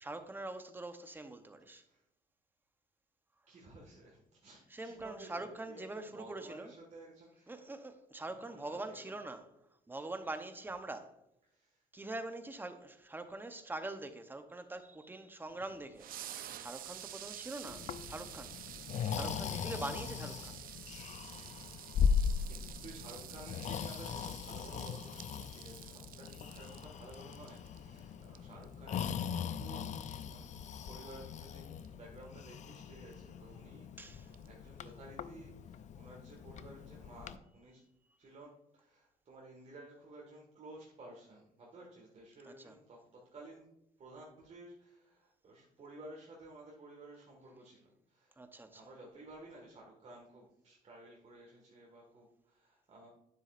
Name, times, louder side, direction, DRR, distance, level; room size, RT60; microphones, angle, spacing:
voice 1, 0.0-1.8 4.7-6.7 7.5-9.5 9.9-11.2 11.9-18.6 19.1-20.7 34.0-34.3 42.5-42.8 48.4-48.8, right 2 dB, 10° right, 0.8 m, -44 dB
voice 2, 3.5-7.6 8.4-9.1 11.4-11.9 21.3-21.8 22.4-37.8 38.2-43.7 44.0-53.1, right 2 dB, 40° right, 1.8 m, -54 dB
sound 1, 15.5-35.3, right 11 dB, 55° right, 0.6 m, -51 dB
Breathing, 17.7-37.4, left 7 dB, 45° left, 0.5 m, -39 dB
9.7 x 7.4 x 2.5 m
cardioid pair, 110°, 17 cm